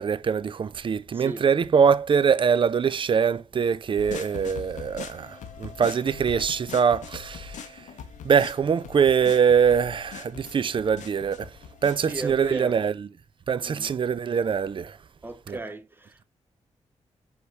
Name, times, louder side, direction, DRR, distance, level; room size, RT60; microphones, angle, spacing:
voice 1, 0.0-7.6 8.2-11.5 11.8-13.1 13.5-15.0 15.5-15.6, right 6 dB, 45° right, 0.3 m, -23 dB
voice 2, 1.1-1.4 12.0-12.8 13.6-13.9 15.2-16.2, right 2 dB, 15° right, 0.8 m, -36 dB
sound 1, 4.0-12.5, left 7 dB, 85° left, 0.6 m, -42 dB
4.4 x 3.4 x 3.2 m
cardioid pair, 50°, 12 cm